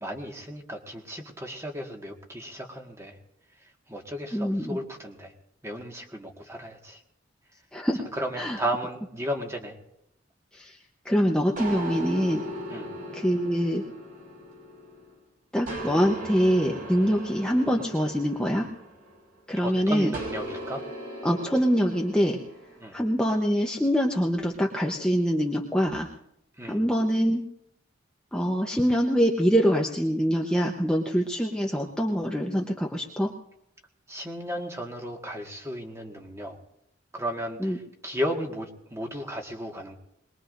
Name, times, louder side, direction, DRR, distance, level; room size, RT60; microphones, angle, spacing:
voice 1, 0.0-3.2 3.9-5.3 5.6-7.0 8.1-9.8 12.7-12.9 19.6-20.8 22.8-22.9 26.6-26.8 34.1-36.6 37.1-40.0, equal, 15° right, 2 dB, 1.7 m, -34 dB
voice 2, 4.3-4.8 7.7-8.0 8.4-8.6 10.5-10.8 11.0-12.4 13.1-13.8 15.5-18.7 19.5-20.1 21.2-22.4 22.9-26.1 26.7-27.4 28.3-33.3 37.6-37.8, equal, 5° left, -1 dB, 0.9 m, -24 dB
sound 1, 11.6-15.1 15.7-19.4 20.1-22.8, right 1 dB, 45° right, 5.5 m, -38 dB
22.0 x 21.0 x 2.6 m, 0.80 s
head